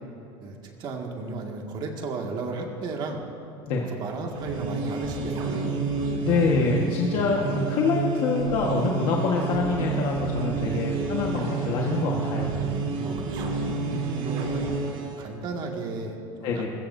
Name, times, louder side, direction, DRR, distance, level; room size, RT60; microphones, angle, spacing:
voice 1, 0.4-3.2 3.8-5.7 10.7-10.9 11.8-12.4 13.0-13.8 14.2-14.7 15.0-16.6, right 3 dB, 45° right, 1 dB, 1.9 m, -35 dB
sound 1, 4.2-15.2, right 4 dB, 80° right, 3.0 m, -29 dB
voice 2, 6.2-12.5 16.4-16.7, left 4 dB, 55° left, -1 dB, 1.4 m, -25 dB
20.5 x 15.5 x 2.7 m, 2.9 s
cardioid pair, 155°, 11 cm